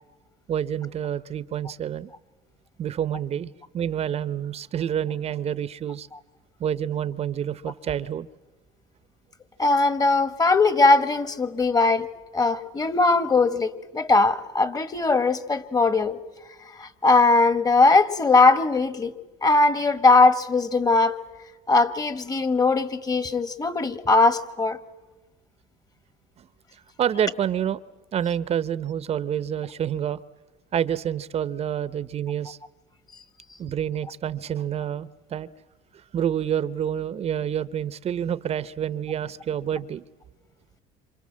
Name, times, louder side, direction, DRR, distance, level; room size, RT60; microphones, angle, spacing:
voice 1, 0.5-2.1 2.8-6.1 6.6-8.3 26.4-26.5 27.0-27.8 28.1-30.2 30.7-32.6 33.6-35.5 36.1-40.0, right 9 dB, 40° right, 17 dB, 0.8 m, -28 dB
voice 2, 9.6-12.1 12.3-16.2 16.7-19.1 19.4-21.2 21.7-24.8, left 3 dB, 25° left, 13 dB, 1.7 m, -20 dB
27.5 x 26.5 x 7.5 m, 1.2 s
supercardioid pair, 100°, 16 cm